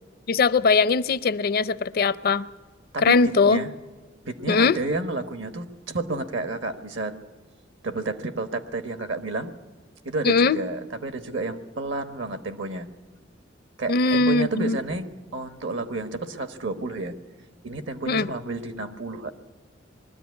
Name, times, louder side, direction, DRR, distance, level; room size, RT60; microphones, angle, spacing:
voice 1, 0.3-2.4 3.0-3.6 4.5-4.8 10.2-10.6 13.9-14.8 18.1-18.3, left 4 dB, 50° left, 0.5 m, -20 dB
voice 2, 2.9-3.7 4.2-7.1 7.8-9.5 10.0-12.9 13.8-17.1 17.6-19.3, right 2 dB, 70° right, 1.4 m, -31 dB
21.5 x 13.5 x 9.5 m
head